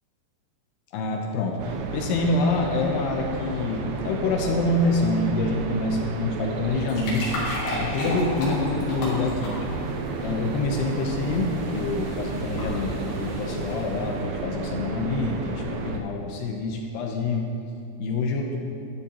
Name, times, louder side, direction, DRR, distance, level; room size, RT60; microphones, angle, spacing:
voice 1, 0.9-7.4 7.8-9.6 10.2-17.6 18.0-18.6, left 2 dB, 75° left, 2 dB, 2.5 m, -26 dB
sound 1, 1.6-16.0, right 4 dB, 85° right, 2.2 m, -32 dB
sound 2, 6.6-14.2, left 1 dB, 55° left, 4.4 m, -35 dB
13.0 x 12.5 x 3.0 m, 2.4 s
omnidirectional pair, 5.5 m